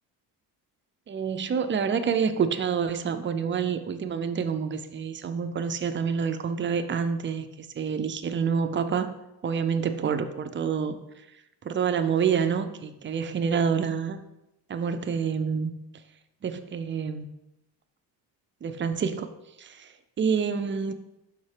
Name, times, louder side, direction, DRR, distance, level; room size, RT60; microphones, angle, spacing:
voice 1, 1.1-9.1 9.4-11.0 11.6-14.2 14.7-15.7 16.4-17.3 18.6-19.3 19.6-20.9, right 6 dB, 30° right, 9 dB, 0.5 m, -27 dB
5.9 x 4.3 x 4.8 m, 0.90 s
cardioid pair, 115°, 43 cm